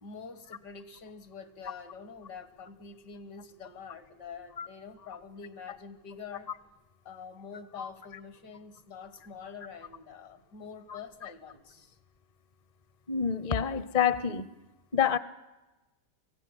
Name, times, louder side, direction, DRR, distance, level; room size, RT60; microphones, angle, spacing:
voice 1, 0.0-6.5 7.1-12.0, left 5 dB, 75° left, 2.2 m, -46 dB
voice 2, 10.9-11.3 13.1-14.5 14.9-15.2, left 8 dB, 40° left, 0.6 m, -28 dB
23.5 x 17.0 x 9.8 m
omnidirectional pair, 1.8 m